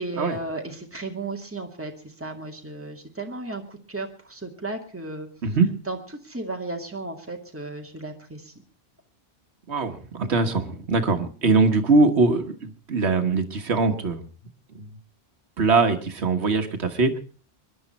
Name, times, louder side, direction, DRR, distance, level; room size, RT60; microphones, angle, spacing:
voice 1, 0.0-5.3 5.9-6.0 6.2-8.5 11.0-11.2, right 2 dB, 10° right, 2 dB, 2.1 m, -34 dB
voice 2, 9.7-14.3 14.8-14.9 15.6-17.2, right 3 dB, 70° right, 6 dB, 1.7 m, -22 dB
24.5 x 11.0 x 4.2 m, 0.37 s
omnidirectional pair, 1.2 m